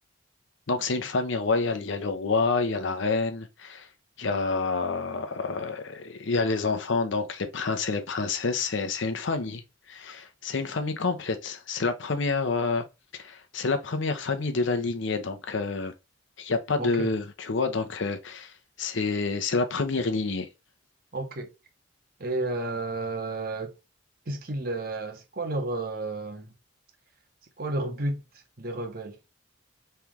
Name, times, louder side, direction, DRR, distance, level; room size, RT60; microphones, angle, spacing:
voice 1, 0.7-3.9 4.2-9.6 9.9-12.8 13.2-15.9 16.4-18.5 18.8-20.5, left 3 dB, 70° left, 0.7 m, -28 dB
voice 2, 16.8-17.1 21.1-21.5 22.2-23.7 24.3-26.5 27.6-28.2 28.6-29.2, right 2 dB, 50° right, 0.9 m, -31 dB
3.3 x 3.0 x 3.5 m
head